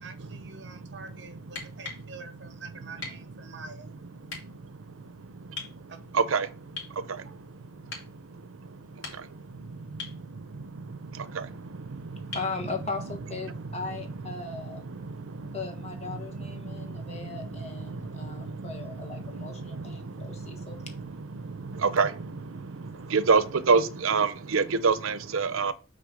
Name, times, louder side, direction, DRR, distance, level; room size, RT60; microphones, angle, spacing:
voice 1, 0.0-3.9 5.9-6.0, right 4 dB, 60° right, 1.0 m, -46 dB
sound 1, 1.4-2.1 3.0-3.2 4.3-4.4 5.6-5.8 6.8-7.0 7.9-8.1 8.8-9.5 10.0-10.2 12.3-12.6 14.4-14.5, left 5 dB, 70° left, 2.7 m, -39 dB
voice 2, 12.3-14.8 15.5-20.8, left 4 dB, 30° left, 1.4 m, -38 dB
voice 3, 23.1-25.7, right 5 dB, 90° right, 0.6 m, -23 dB
6.7 x 4.0 x 6.3 m
head